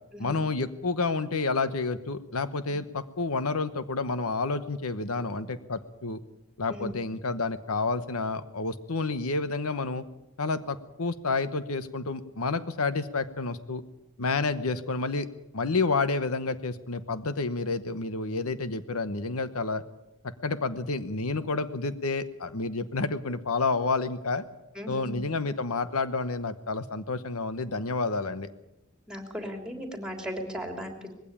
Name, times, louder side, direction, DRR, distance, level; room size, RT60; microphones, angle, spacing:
voice 1, 0.2-6.2 6.6-10.0 10.4-13.8 14.2-15.3 15.5-19.8 20.2-24.4 24.9-28.5, left 3 dB, 75° left, 12 dB, 1.0 m, -29 dB
voice 2, 24.7-25.2 29.1-31.1, equal, 5° right, 4 dB, 3.1 m, -37 dB
20.5 x 16.0 x 8.7 m, 0.94 s
head